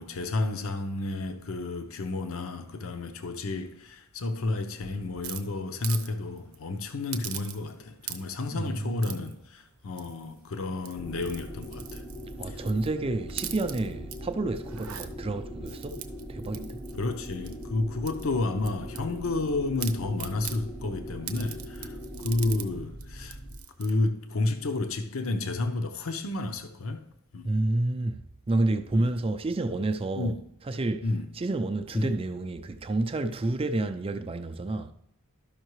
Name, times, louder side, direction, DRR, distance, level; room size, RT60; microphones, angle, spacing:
voice 1, 0.0-12.1 12.4-12.6 16.9-23.4 23.8-27.5 28.9-29.1 30.2-30.4 31.0-31.3 31.9-32.1, left 2 dB, 65° left, 0.7 m, -31 dB
sound 1, 5.2-6.1 6.4-6.6 7.1-7.8 8.0-8.5 9.0-9.3 10.0-10.4 10.8-12.9 13.3-14.2 14.6-15.1 15.7-17.7 18.1-19.5 19.8-20.6 21.3-22.7 23.0-23.1 23.3-23.9, right 11 dB, 75° right, 0.7 m, -41 dB
voice 2, 8.5-9.3 12.4-16.0 16.3-16.8 27.4-30.4 30.7-31.1 31.3-34.9, right 2 dB, 25° right, 0.4 m, -29 dB
sound 2, 11.0-23.6, equal, 10° left, 0.7 m, -41 dB
12.0 x 5.6 x 3.1 m
head